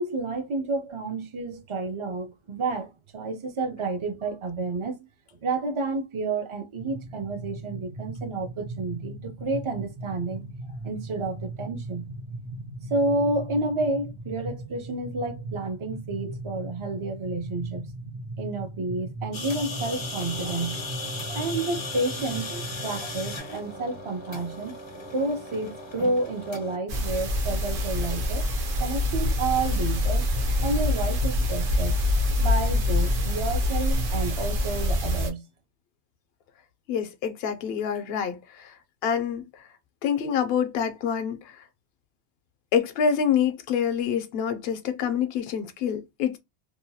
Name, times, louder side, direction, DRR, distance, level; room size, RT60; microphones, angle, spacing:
voice 1, 0.0-5.1 5.4-10.5 10.8-12.1 12.9-17.9 18.4-20.8 21.3-24.8 25.1-28.5 28.8-30.3 30.6-32.0 32.4-35.4, right 2 dB, 40° right, 0.4 m, -30 dB
sound 1, 6.8-23.4, right 2 dB, 85° right, 1.1 m, -38 dB
sound 2, 19.3-26.8, left 2 dB, 35° left, 0.5 m, -37 dB
sound 3, 26.9-35.3, left 1 dB, 55° right, 0.8 m, -25 dB
voice 2, 36.9-38.7 39.0-39.6 40.0-41.6 42.7-46.4, left 7 dB, 70° left, 0.8 m, -26 dB
2.8 x 2.2 x 2.7 m
omnidirectional pair, 1.1 m